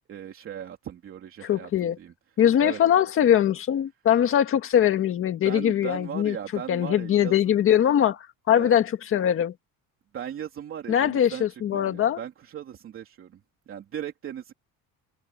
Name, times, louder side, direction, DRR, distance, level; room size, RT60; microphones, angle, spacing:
voice 1, 0.1-2.1 2.6-3.0 5.4-7.6 8.5-8.8 10.1-13.4 13.7-14.5, right 9 dB, 40° right, 3.0 m, -38 dB
voice 2, 1.4-2.0 2.4-9.5 10.9-12.2, left 10 dB, 40° left, 1.8 m, -22 dB
cardioid pair, 180°, 34 cm